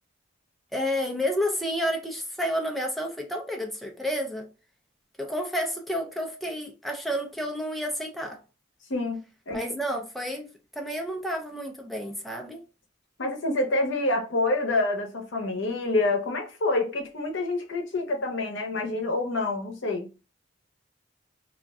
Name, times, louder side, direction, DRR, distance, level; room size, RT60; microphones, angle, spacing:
voice 1, 0.7-4.5 5.2-8.4 9.5-10.5 10.8-12.6, equal, ahead, 0.4 m, -30 dB
voice 2, 8.9-9.6 13.2-20.1, left 2 dB, 75° left, 0.7 m, -27 dB
2.4 x 2.1 x 3.5 m
head